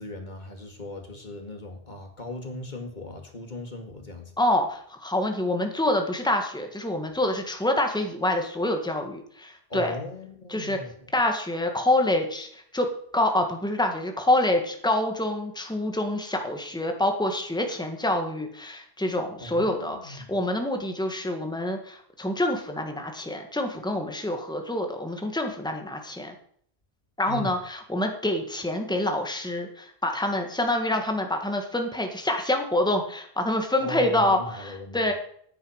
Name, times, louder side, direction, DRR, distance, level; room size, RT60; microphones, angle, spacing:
voice 1, 0.0-4.3 9.7-11.1 19.4-20.4 27.3-27.6 33.8-35.1, left 2 dB, 45° left, 4 dB, 2.3 m, -38 dB
voice 2, 4.4-9.9 10.5-10.8 11.1-26.3 27.2-34.4 34.6-35.1, left 1 dB, 5° left, 4 dB, 1.7 m, -26 dB
9.5 x 9.5 x 6.5 m, 0.62 s
omnidirectional pair, 1.1 m